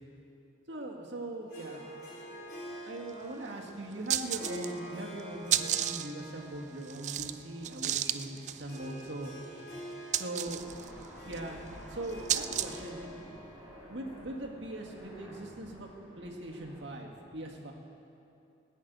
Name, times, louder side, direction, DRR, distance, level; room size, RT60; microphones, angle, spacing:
voice 1, 0.7-9.3 10.1-10.7 11.2-13.1 13.9-15.9 16.2-17.7, right 1 dB, 70° right, 0 dB, 1.9 m, -41 dB
Harp, 1.5-15.1, equal, 50° left, 4.5 m, -47 dB
sound 1, 3.1-3.2 3.4-3.5 3.9-4.9 5.2-12.9, right 11 dB, 40° right, 0.3 m, -34 dB
Aircraft, 10.6-16.9, equal, 5° right, 4.2 m, -50 dB
18.5 x 6.5 x 9.3 m, 2.7 s
head